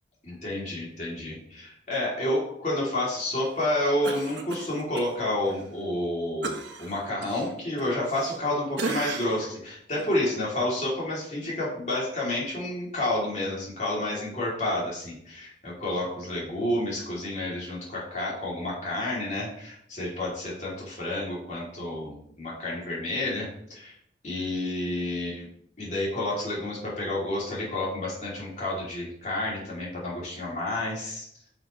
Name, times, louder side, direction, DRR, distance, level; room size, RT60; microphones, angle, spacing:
voice 1, 0.2-23.9 24.2-25.5 25.8-31.3, left 1 dB, 40° left, -5 dB, 3.2 m, -30 dB
Cough, 4.0-5.1 5.5-5.6 6.4-8.5 8.8-9.5 10.0-10.1, right 3 dB, 80° right, 1.2 m, -35 dB
10.0 x 6.2 x 3.3 m, 0.69 s
head